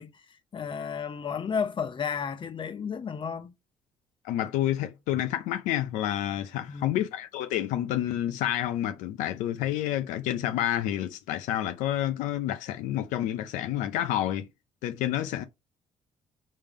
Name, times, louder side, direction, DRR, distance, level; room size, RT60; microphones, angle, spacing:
voice 1, 0.0-3.5 6.7-7.0, left 6 dB, 40° left, 0.9 m, -33 dB
voice 2, 4.2-14.5 14.8-15.4, left 12 dB, 90° left, 0.6 m, -29 dB
5.4 x 3.5 x 5.5 m
cardioid pair, 80°, 12 cm